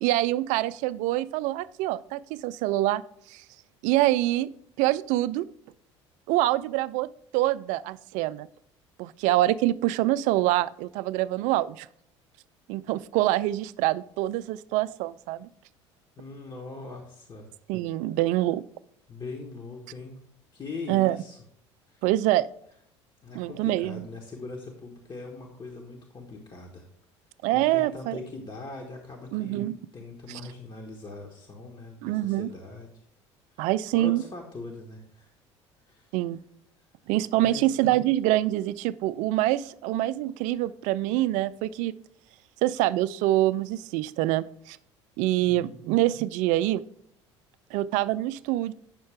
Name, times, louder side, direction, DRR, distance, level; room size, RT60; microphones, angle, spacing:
voice 1, 0.0-3.0 3.3-3.4 3.8-4.5 4.8-5.5 6.3-7.1 7.3-8.5 9.0-11.9 12.7-15.5 17.7-18.6 20.9-21.2 22.0-22.5 23.3-24.1 27.4-28.2 29.3-29.8 30.3-30.4 32.0-32.5 33.6-34.2 36.1-36.4 37.1-41.9 42.6-44.8 45.2-46.8 47.7-48.7, right 15 dB, 55° right, 17 dB, 0.4 m, -25 dB
voice 2, 16.2-17.5 19.1-20.2 20.5-21.4 21.9-22.0 23.2-26.9 27.5-32.9 33.5-35.3 35.8-36.2 37.4-37.7 45.4-45.8, left 3 dB, 30° left, 0 dB, 1.4 m, -41 dB
8.8 x 6.4 x 3.4 m, 0.67 s
figure-of-eight pair, 65°, 15 cm